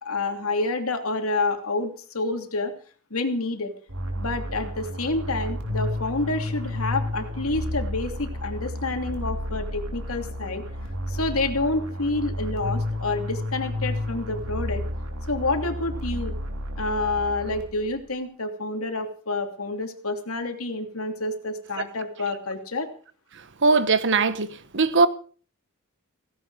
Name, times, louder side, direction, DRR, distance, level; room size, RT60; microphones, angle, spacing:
voice 1, 0.0-2.7 3.1-3.7 4.2-10.7 11.1-14.8 15.3-16.4 16.8-22.9, left 2 dB, 75° left, 2.8 m, -28 dB
sound 1, 3.9-18.0, left 1 dB, 90° right, 3.7 m, -31 dB
voice 2, 23.6-25.1, right 4 dB, 55° right, 1.2 m, -20 dB
17.0 x 16.0 x 4.8 m
head